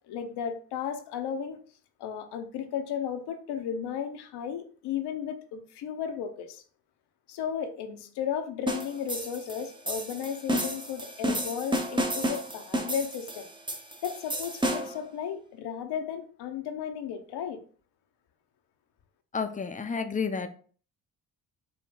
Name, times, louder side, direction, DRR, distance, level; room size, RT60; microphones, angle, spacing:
voice 1, 0.1-1.6 2.0-6.6 7.3-13.5 14.0-17.6, left 8 dB, 65° left, 8 dB, 0.8 m, -34 dB
sound 1, 8.7-15.0, right 1 dB, 10° right, 0.9 m, -32 dB
voice 2, 19.3-20.5, left 5 dB, 20° left, 8 dB, 0.6 m, -30 dB
5.1 x 2.2 x 3.8 m, 0.43 s
hypercardioid pair, 50°, 43 cm